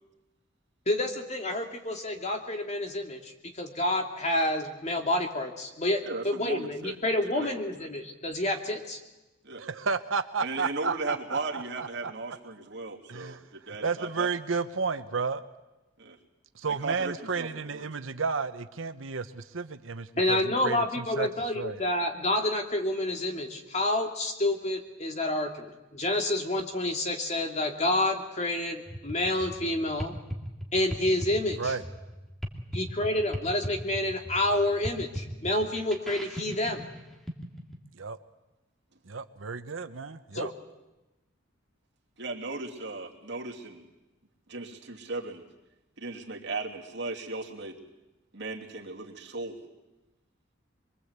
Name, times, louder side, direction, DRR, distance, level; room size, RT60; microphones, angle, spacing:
voice 1, 0.9-9.0 20.2-30.2 30.7-31.7 32.7-36.8 40.3-40.5, left 1 dB, 35° left, 3 dB, 2.5 m, -29 dB
voice 2, 6.0-6.9 7.3-7.5 9.4-9.6 10.4-14.3 16.0-16.2 16.7-17.9 42.2-43.9 44.5-45.4 46.0-47.8 48.3-49.6, right 3 dB, 60° right, 0 dB, 2.9 m, -36 dB
voice 3, 9.6-12.1 13.1-15.4 16.5-21.3 21.5-21.8 31.6-31.8 38.0-38.2 39.1-40.5, right 5 dB, 80° right, 9 dB, 1.0 m, -32 dB
sound 1, 28.9-37.8, equal, ahead, 2.5 m, -38 dB
24.0 x 23.0 x 8.2 m, 1.0 s
head